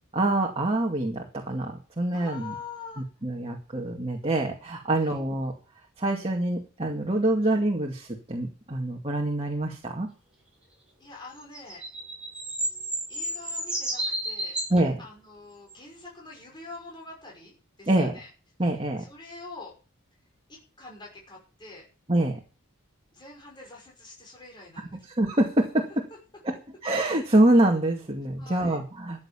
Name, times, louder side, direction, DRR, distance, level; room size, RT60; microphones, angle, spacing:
voice 1, 0.1-2.5 3.2-5.5 6.0-10.1 14.7-15.0 17.9-18.2 18.6-19.0 22.1-22.4 25.1-26.0 26.4-26.6 26.8-29.2, right 1 dB, 30° right, 1 dB, 2.2 m, -25 dB
voice 2, 2.1-3.0 4.9-5.2 11.0-11.8 13.1-14.6 15.0-18.3 19.0-19.7 20.5-21.9 23.1-25.1 28.4-28.8, left 3 dB, 20° left, -1 dB, 5.7 m, -45 dB
sound 1, 11.4-14.8 15.7-15.8, right 1 dB, 5° right, 7.4 m, -31 dB
14.0 x 8.8 x 7.2 m, 0.35 s
head